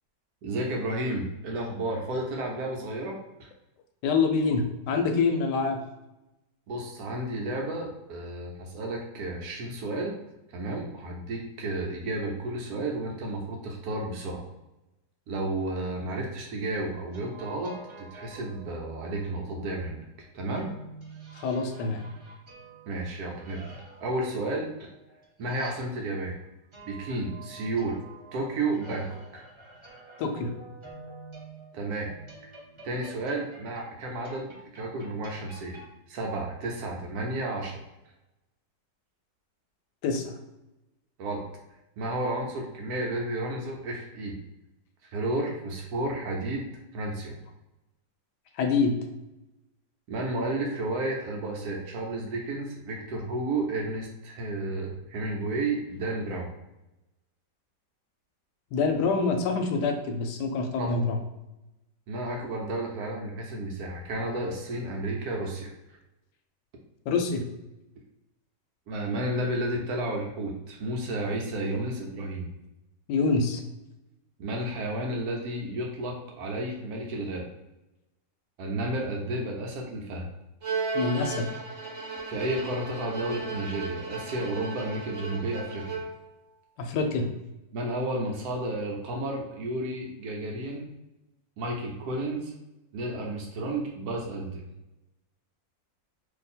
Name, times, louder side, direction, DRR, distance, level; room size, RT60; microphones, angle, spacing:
voice 1, 0.4-3.2 6.7-10.2 10.5-14.4 15.3-20.0 20.3-20.7 22.9-24.7 25.4-26.3 26.9-28.0 28.3-29.4 31.7-32.1 32.4-32.5 32.8-35.8 36.1-37.8 41.2-41.4 42.0-44.4 45.0-46.7 46.9-47.4 50.1-56.5 60.8-61.0 62.1-66.0 68.9-72.5 74.4-77.4 78.6-80.3 82.3-86.1 87.7-90.9 91.6-92.5 92.9-94.6, right 1 dB, 70° right, 0 dB, 1.1 m, -32 dB
voice 2, 4.0-5.8 21.3-22.0 30.2-30.5 40.0-40.2 48.6-48.9 58.7-61.2 67.1-67.4 73.1-73.6 80.9-81.5 86.8-87.3, left 4 dB, 75° left, 5 dB, 1.1 m, -26 dB
sound 1, 16.8-19.3 20.5-26.2 26.7-35.9, right 3 dB, 25° right, 0.7 m, -48 dB
Bowed string instrument, 80.6-86.3, right 4 dB, 55° right, 1.1 m, -35 dB
2.8 x 2.5 x 4.1 m, 0.96 s
omnidirectional pair, 1.9 m